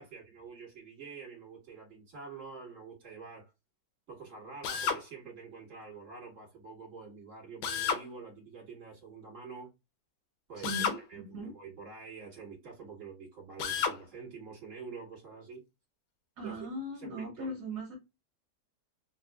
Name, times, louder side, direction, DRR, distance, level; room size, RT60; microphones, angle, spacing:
voice 1, 0.0-3.5 4.1-9.7 10.5-15.6 16.4-16.7 16.9-17.6, right 5 dB, 40° right, 1.9 m, -47 dB
Drill, 4.6-5.0 7.6-8.1 10.6-11.0 13.6-14.0, left 7 dB, 90° left, 1.4 m, -31 dB
voice 2, 10.6-11.5 16.4-18.0, right 1 dB, 60° right, 1.5 m, -39 dB
3.5 x 2.4 x 2.2 m
omnidirectional pair, 2.2 m